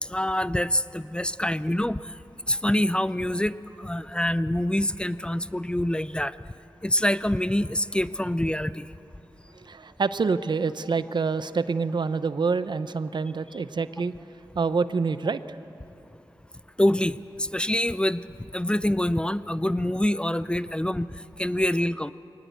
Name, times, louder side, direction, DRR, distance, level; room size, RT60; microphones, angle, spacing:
voice 1, 0.0-2.2 2.5-6.3 6.8-8.9 16.8-18.2 18.5-21.1 21.4-22.1, left 1 dB, 10° left, 15 dB, 0.5 m, -25 dB
voice 2, 9.6-14.1 14.6-15.4, right 4 dB, 65° right, 13 dB, 0.7 m, -26 dB
23.0 x 19.5 x 8.2 m, 2.9 s
wide cardioid pair, 65°, 8 cm